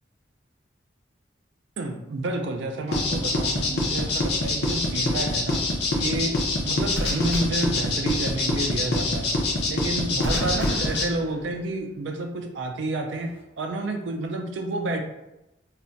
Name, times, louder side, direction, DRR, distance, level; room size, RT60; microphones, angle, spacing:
voice 1, 1.8-5.6 6.0-6.4 6.6-9.3 9.7-15.0, right 2 dB, 70° right, 5 dB, 0.4 m, -30 dB
sound 1, 2.9-11.0, left 2 dB, 55° left, 0.5 m, -25 dB
sound 2, 3.1-3.4 6.9-8.4 10.2-11.9 13.1-13.4, equal, 5° left, 0.6 m, -34 dB
2.4 x 2.1 x 3.8 m, 0.94 s
head